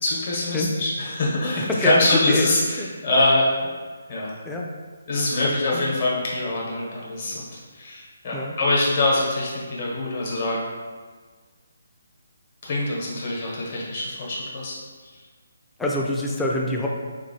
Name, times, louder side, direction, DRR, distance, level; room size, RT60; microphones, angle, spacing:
voice 1, 0.0-3.5 4.1-4.3 5.1-10.6 12.6-14.7, left 2 dB, 45° left, -5 dB, 1.1 m, -24 dB
voice 2, 1.6-2.0 2.3-2.5 2.8-2.9 4.4-4.6 5.4-5.9 8.3-8.5 15.8-16.9, left 1 dB, 5° left, -2 dB, 0.4 m, -25 dB
4.4 x 2.7 x 2.8 m, 1.5 s
figure-of-eight pair, 145°, 0 cm